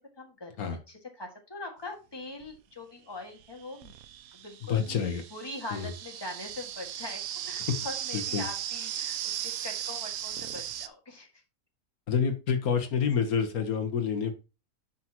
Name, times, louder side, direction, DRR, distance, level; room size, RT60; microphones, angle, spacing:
voice 1, 0.2-3.9 4.3-5.0 5.3-9.2 9.4-11.4, left 2 dB, 15° left, 1 dB, 1.9 m, -42 dB
sound 1, 2.4-2.5 3.4-10.9, right 11 dB, 80° right, 1.1 m, -37 dB
voice 2, 4.6-5.2 5.7-5.9 7.7-7.8 8.3-8.4 12.1-14.3, left 7 dB, 85° left, 6 dB, 1.7 m, -28 dB
9.8 x 5.9 x 3.0 m, 0.29 s
omnidirectional pair, 1.5 m